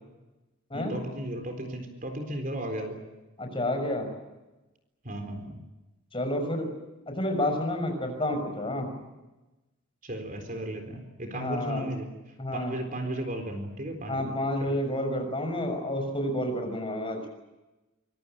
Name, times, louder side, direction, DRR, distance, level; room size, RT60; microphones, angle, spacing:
voice 1, 0.7-3.0 5.0-5.6 8.3-8.4 8.8-8.9 10.0-12.1 12.5-14.3 14.6-14.8, right 1 dB, 40° right, 6 dB, 4.0 m, -35 dB
voice 2, 3.4-4.1 6.1-6.7 7.1-8.9 11.3-11.9 12.4-12.8 14.1-17.3, left 1 dB, 25° left, 4 dB, 6.0 m, -30 dB
25.5 x 22.5 x 8.9 m, 1.1 s
head